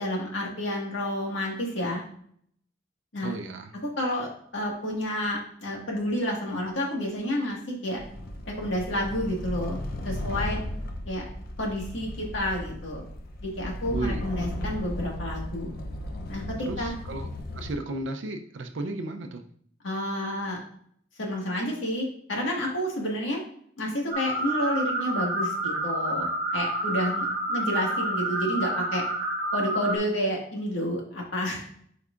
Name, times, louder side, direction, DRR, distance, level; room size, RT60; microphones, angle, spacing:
voice 1, 0.0-2.0 3.1-3.3 4.0-4.3 4.5-8.0 8.6-9.8 10.0-10.6 11.1-11.3 11.6-13.1 13.4-15.7 16.3-16.9 19.8-20.6 21.2-23.4 23.8-29.0 29.5-31.6, left 1 dB, 85° left, -1 dB, 1.7 m, -30 dB
voice 2, 3.2-3.7 13.9-14.2 16.6-19.4, right 2 dB, 75° right, 5 dB, 0.6 m, -34 dB
sound 1, 8.0-17.7, left 1 dB, 50° left, 0.7 m, -35 dB
sound 2, 24.1-30.0, right 1 dB, 50° right, 1.0 m, -29 dB
8.1 x 4.6 x 2.5 m, 0.63 s
head